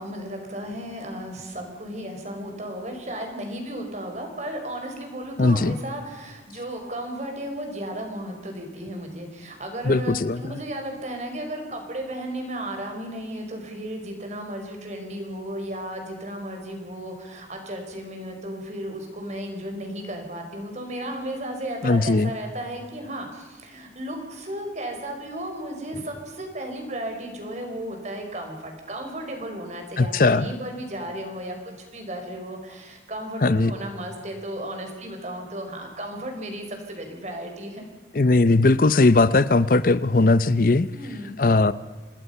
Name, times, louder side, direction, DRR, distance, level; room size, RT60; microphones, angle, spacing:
voice 1, 0.0-37.8 40.9-41.4, right 1 dB, 40° right, 3 dB, 4.9 m, -34 dB
voice 2, 5.4-5.8 9.9-10.4 21.8-22.3 30.0-30.5 33.4-33.7 38.2-40.9 41.4-41.7, left 3 dB, 50° left, 16 dB, 0.6 m, -18 dB
27.0 x 20.0 x 5.6 m, 1.3 s
head